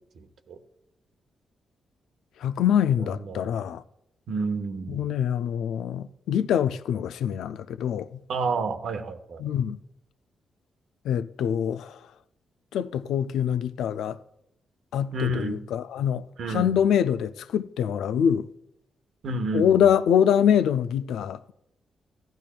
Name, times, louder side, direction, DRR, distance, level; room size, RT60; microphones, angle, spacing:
voice 1, 0.1-0.6 3.2-3.5 4.3-5.0 8.3-9.4 15.1-15.6 16.4-16.8 19.2-19.9, right 3 dB, 75° right, 1.0 m, -30 dB
voice 2, 2.4-3.8 4.9-8.2 9.4-9.8 11.0-12.0 12.7-14.2 14.9-18.5 19.5-21.5, left 9 dB, 85° left, 0.3 m, -24 dB
15.5 x 10.5 x 2.3 m
cardioid pair, 65°, 0 cm